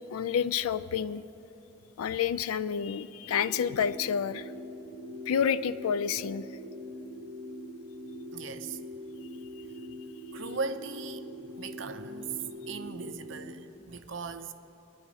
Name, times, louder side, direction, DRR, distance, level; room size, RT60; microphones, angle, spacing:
voice 1, 0.1-1.2 2.0-4.5 5.3-6.5, left 7 dB, 80° left, 0.3 m, -29 dB
sound 1, 3.3-13.3, left 1 dB, 20° left, 2.4 m, -43 dB
voice 2, 8.3-8.8 10.3-14.5, right 4 dB, 60° right, 0.5 m, -38 dB
22.5 x 10.0 x 2.8 m
head